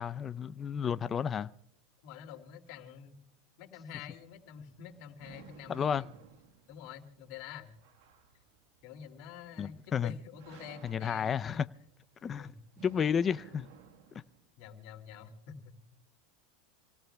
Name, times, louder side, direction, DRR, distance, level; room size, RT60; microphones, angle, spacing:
voice 1, 0.0-1.5 5.7-6.0 9.6-10.1 10.8-11.7 12.2-12.5 12.8-13.7, left 7 dB, 25° left, 0.5 m, -31 dB
voice 2, 2.0-3.2 3.6-6.1 6.7-7.7 8.8-11.6 12.4-12.5 14.6-15.8, left 8 dB, 60° left, 2.5 m, -47 dB
sound 1, 4.1-14.5, right 7 dB, 70° right, 1.5 m, -57 dB
28.0 x 18.0 x 2.3 m
supercardioid pair, 120°, 0 cm